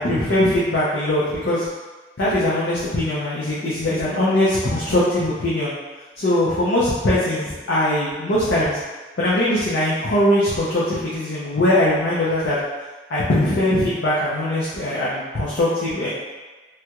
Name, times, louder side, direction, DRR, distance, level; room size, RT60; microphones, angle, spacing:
voice 1, 0.0-1.6 2.2-5.7 6.2-8.8 9.2-12.6 13.1-16.1, left 1 dB, 90° left, -9 dB, 0.7 m, -21 dB
3.3 x 2.3 x 2.9 m, 1.2 s
head